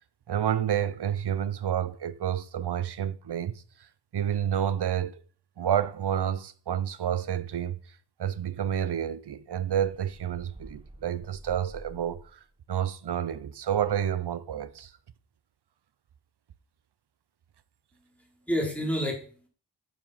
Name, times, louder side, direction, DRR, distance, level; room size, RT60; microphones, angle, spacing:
voice 1, 0.3-3.9 4.1-5.2 5.6-12.4 12.7-14.9, right 9 dB, 75° right, 0.8 m, -29 dB
sound 1, 9.7-12.5, right 1 dB, 15° right, 1.7 m, -49 dB
voice 2, 17.9-19.5, equal, 5° left, 4.1 m, -31 dB
9.7 x 7.5 x 5.7 m
wide cardioid pair, 105°, 41 cm